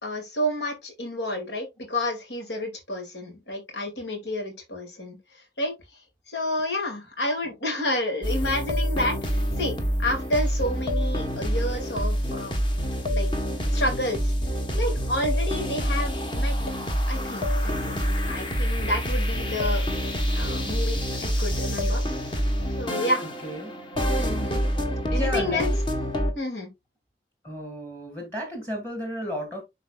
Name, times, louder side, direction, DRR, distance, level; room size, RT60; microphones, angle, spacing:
voice 1, 0.0-5.2 5.6-5.7 6.3-9.7 10.0-12.6 13.1-13.3 13.7-14.3 14.7-16.6 17.1-19.8 20.3-22.0 22.8-23.2 24.2-24.6 25.1-25.7 26.3-26.7, left 1 dB, 85° left, 2.4 m, -30 dB
sound 1, 8.2-26.3, equal, 30° left, 1.1 m, -26 dB
voice 2, 25.1-25.7 27.4-29.6, left 1 dB, 10° left, 1.8 m, -33 dB
11.5 x 4.0 x 2.3 m
head